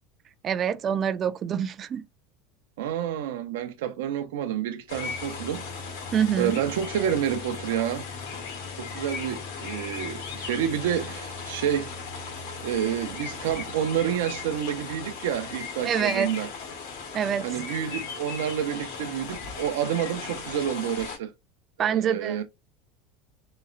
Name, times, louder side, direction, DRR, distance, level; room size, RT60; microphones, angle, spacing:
voice 1, 0.4-2.0 6.1-6.6 15.8-16.3 17.1-17.6 21.8-22.4, right 8 dB, 30° right, 0.3 m, -26 dB
voice 2, 2.8-5.6 5.9-8.1 8.8-11.9 12.6-16.5 17.4-21.3 21.8-22.4, right 9 dB, 85° right, 0.5 m, -29 dB
sound 1, 4.9-21.2, left 5 dB, 85° left, 1.5 m, -37 dB
4.0 x 2.0 x 2.4 m
supercardioid pair, 140°, 0 cm